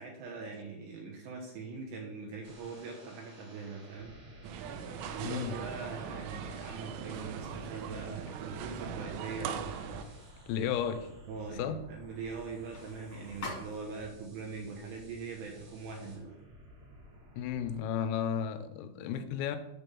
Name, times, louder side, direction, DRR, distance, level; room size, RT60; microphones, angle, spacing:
voice 1, 0.0-4.1 5.0-9.8 11.3-16.4, right 4 dB, 75° right, -1 dB, 2.7 m, -42 dB
sound 1, 2.4-17.8, equal, 40° right, 2.0 m, -55 dB
sound 2, 4.4-10.0, right 7 dB, 90° right, 2.6 m, -40 dB
voice 2, 5.2-5.6 10.5-11.1 11.6-11.8 17.4-19.6, left 8 dB, 85° left, 9 dB, 3.3 m, -33 dB
sound 3, 7.1-14.2, left 2 dB, 45° left, 1.6 m, -50 dB
10.0 x 3.4 x 7.0 m, 0.89 s
omnidirectional pair, 6.0 m